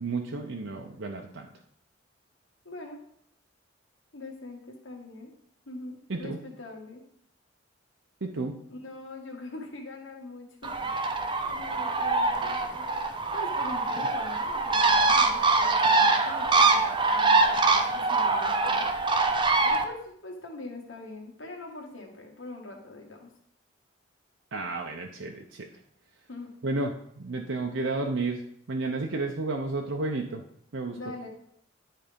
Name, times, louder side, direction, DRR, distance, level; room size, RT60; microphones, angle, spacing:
voice 1, 0.0-1.5 6.1-6.4 8.2-8.6 14.0-14.1 24.5-25.8 26.6-28.4 28.7-30.4 30.7-31.0, right 3 dB, 75° right, 2 dB, 0.7 m, -32 dB
voice 2, 2.6-3.0 4.1-5.3 5.7-7.0 8.7-10.7 11.1-12.9 13.3-18.8 19.6-23.3 26.3-26.5 30.9-31.3, left 2 dB, 80° left, 1 dB, 1.9 m, -43 dB
Bird, 10.6-19.8, right 3 dB, 25° right, 0.7 m, -24 dB
10.5 x 4.2 x 5.2 m, 0.69 s
head